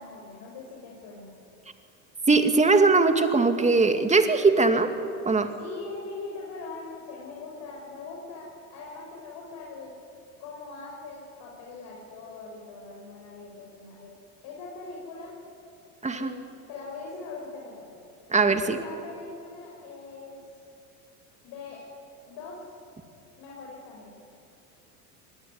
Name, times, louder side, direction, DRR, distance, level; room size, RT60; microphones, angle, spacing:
voice 1, 0.0-1.4 5.6-10.0 10.4-14.1 14.4-15.3 16.1-18.0 18.6-20.4 21.4-21.8 22.3-22.7 23.4-24.1, left 3 dB, 55° left, -2 dB, 6.3 m, -41 dB
voice 2, 2.3-4.9 5.3-5.5 16.0-16.3 18.3-18.8, right 3 dB, 15° right, 7 dB, 2.5 m, -20 dB
25.5 x 20.0 x 9.8 m, 2.5 s
hypercardioid pair, 85°, 44 cm